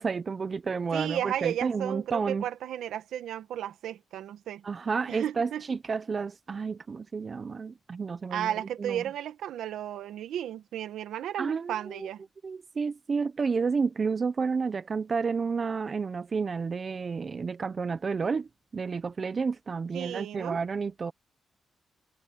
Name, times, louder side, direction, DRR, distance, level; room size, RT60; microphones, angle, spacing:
voice 1, 0.0-2.4 4.6-8.5 8.8-9.0 11.4-12.1 12.4-18.5 18.7-21.1, right 5 dB, 50° right, 0.8 m, -31 dB
voice 2, 0.9-4.6 5.1-5.6 8.3-12.2 19.9-20.6, right 10 dB, 85° right, 1.7 m, -34 dB
supercardioid pair, 55°, 0 cm